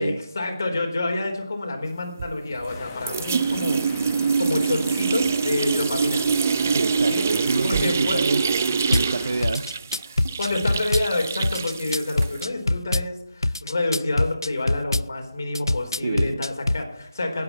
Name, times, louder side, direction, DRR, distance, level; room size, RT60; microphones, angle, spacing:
voice 1, 0.0-3.9 4.4-6.2 7.0-7.2 7.6-8.2 10.4-17.4, left 2 dB, 50° left, 3 dB, 4.1 m, -28 dB
sound 1, 2.2-2.8 3.1-12.4, right 5 dB, 35° right, 0.4 m, -25 dB
sound 2, 2.7-9.5, left 5 dB, 15° left, 1.3 m, -39 dB
voice 2, 6.7-8.4 8.9-10.2 16.0-16.4, right 3 dB, 55° right, 15 dB, 0.8 m, -28 dB
Drum kit / Bass drum, 8.9-9.1 9.4-11.1 11.4-13.1 13.4-15.1 15.5-16.8, left 2 dB, 90° left, 0.4 m, -24 dB
18.5 x 8.7 x 5.8 m, 0.74 s
figure-of-eight pair, 160°, 2 cm